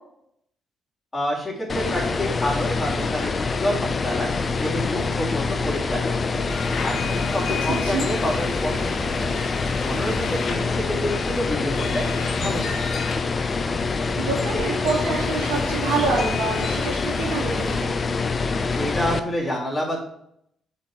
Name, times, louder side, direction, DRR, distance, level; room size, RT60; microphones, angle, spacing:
voice 1, 1.1-4.3 4.6-6.5 6.8-9.3 9.8-12.1 12.3-12.9 18.6-20.0, equal, 25° left, -3 dB, 3.5 m, -28 dB
sound 1, 1.7-19.2, left 4 dB, 40° left, 0.6 m, -25 dB
sound 2, 6.5-17.9, left 5 dB, 55° left, 1.0 m, -35 dB
voice 2, 7.6-8.1 13.8-17.9, right 4 dB, 80° right, -3 dB, 2.1 m, -27 dB
7.4 x 4.3 x 6.1 m, 0.72 s
hypercardioid pair, 45°, 0 cm